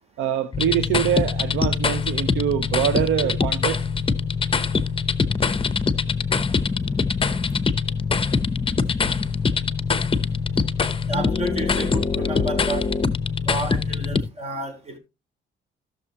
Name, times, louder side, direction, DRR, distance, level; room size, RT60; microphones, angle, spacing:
voice 1, 0.2-3.8, right 10 dB, 80° right, 0.8 m, -24 dB
sound 1, 0.5-14.2, left 5 dB, 25° left, 0.9 m, -23 dB
voice 2, 11.1-12.8 13.5-15.0, right 1 dB, 30° right, 4.1 m, -30 dB
15.0 x 6.7 x 2.9 m
cardioid pair, 90°, 20 cm